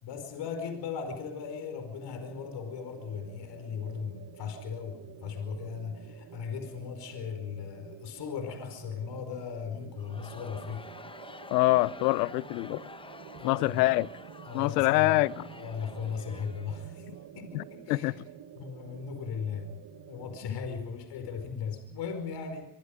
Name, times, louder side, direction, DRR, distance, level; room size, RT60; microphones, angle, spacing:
voice 1, 0.0-10.9 13.4-13.8 14.5-15.2 15.5-18.1 18.5-19.7 20.1-22.7, left 6 dB, 60° left, 5.0 m, -37 dB
sound 1, 0.6-20.4, right 10 dB, 50° right, 1.7 m, -50 dB
Crowd, 10.0-17.2, left 3 dB, 10° left, 1.1 m, -48 dB
voice 2, 11.5-12.8 13.4-14.1 14.5-15.5 17.5-18.1, left 19 dB, 85° left, 0.8 m, -25 dB
25.0 x 24.0 x 5.1 m
hypercardioid pair, 70°, 46 cm